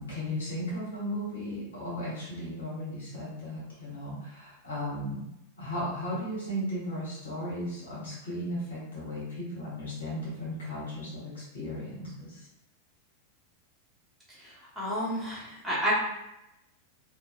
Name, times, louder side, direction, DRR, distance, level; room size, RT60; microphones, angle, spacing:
voice 1, 0.0-5.2 5.6-12.5, equal, 65° left, -8 dB, 1.4 m, -36 dB
voice 2, 14.4-15.9, equal, 5° right, -9 dB, 1.0 m, -31 dB
3.0 x 2.2 x 2.2 m, 0.86 s
figure-of-eight pair, 90°, 0 cm